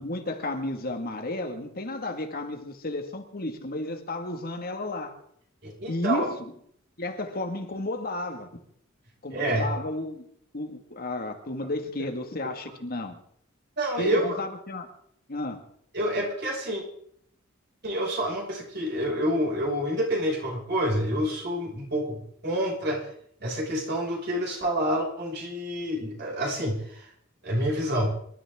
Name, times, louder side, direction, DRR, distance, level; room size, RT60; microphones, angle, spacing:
voice 1, 0.0-5.2 5.9-6.3 7.0-8.5 9.2-10.2 10.5-13.2 14.0-14.9 15.3-15.6, left 2 dB, 45° left, 5 dB, 1.8 m, -32 dB
voice 2, 5.6-6.3 9.3-9.7 13.8-14.4 15.9-16.8 17.8-23.1 23.4-27.1 27.4-28.1, equal, 55° right, -2 dB, 5.8 m, -28 dB
26.0 x 12.5 x 3.7 m, 0.67 s
head